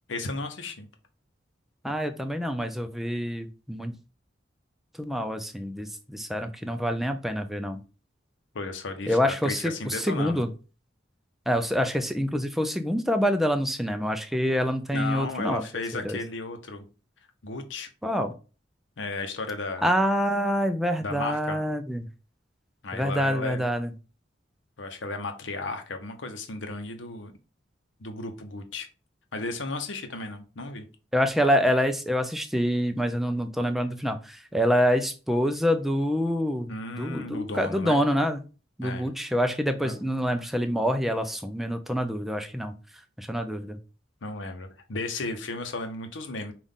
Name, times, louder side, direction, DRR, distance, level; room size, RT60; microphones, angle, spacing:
voice 1, 0.1-0.9 8.5-10.5 14.9-16.8 17.4-17.9 19.0-19.9 21.0-21.6 22.8-23.6 24.8-27.3 28.0-28.9 29.3-30.8 36.7-38.0 38.8-39.1 39.8-39.9 44.2-46.5, left 3 dB, 90° left, 0.8 m, -34 dB
voice 2, 1.8-3.9 5.0-7.8 9.1-10.5 11.5-15.6 15.9-16.2 18.0-18.3 19.8-22.1 22.9-23.9 31.1-38.4 38.8-42.7 43.2-43.8, equal, ahead, 0.4 m, -26 dB
5.5 x 2.5 x 3.6 m
head